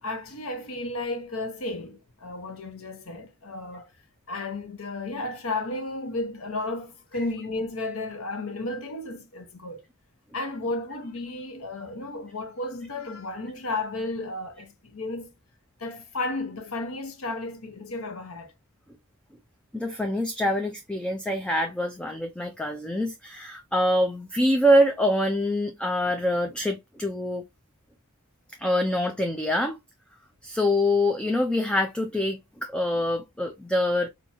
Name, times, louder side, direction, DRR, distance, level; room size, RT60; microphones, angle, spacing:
voice 1, 0.0-3.9 4.3-9.8 10.3-15.3 15.8-18.5, left 2 dB, 80° left, 0.9 m, -33 dB
voice 2, 19.7-27.4 28.6-29.8 30.4-34.1, left 1 dB, 5° left, 0.4 m, -25 dB
4.4 x 2.7 x 2.7 m
head